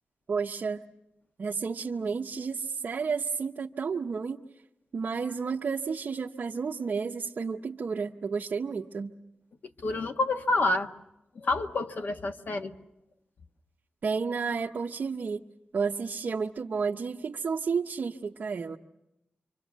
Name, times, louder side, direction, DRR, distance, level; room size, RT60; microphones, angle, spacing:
voice 1, 0.3-0.8 1.4-4.4 4.9-9.1 14.0-15.4 15.7-18.8, right 5 dB, 60° right, -1 dB, 0.9 m, -31 dB
voice 2, 9.8-10.9 11.3-12.7, left 2 dB, 60° left, 6 dB, 1.4 m, -28 dB
27.0 x 25.0 x 7.3 m, 0.90 s
wide cardioid pair, 140°, 3 cm